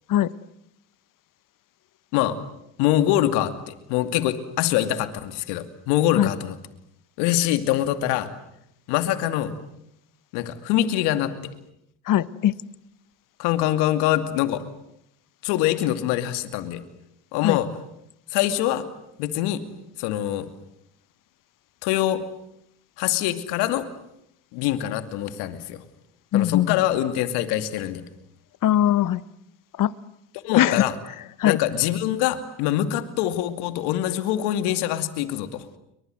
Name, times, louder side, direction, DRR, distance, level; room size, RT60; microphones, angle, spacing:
voice 1, 2.8-6.6 7.2-8.3 8.9-9.5 10.3-11.5 13.4-14.6 15.4-16.8 17.3-17.7 18.3-18.8 19.2-19.6 20.0-20.5 21.8-22.2 23.0-23.9 24.5-25.8 26.3-28.0 30.4-31.0 31.4-35.6, left 13 dB, 80° left, 10 dB, 2.6 m, -24 dB
voice 2, 12.1-12.5 17.4-17.6 26.3-26.8 28.6-29.2 29.8-29.9 30.5-30.8 31.4-31.6, left 12 dB, 55° left, 18 dB, 1.2 m, -20 dB
30.0 x 23.5 x 7.9 m, 0.77 s
supercardioid pair, 75°, 39 cm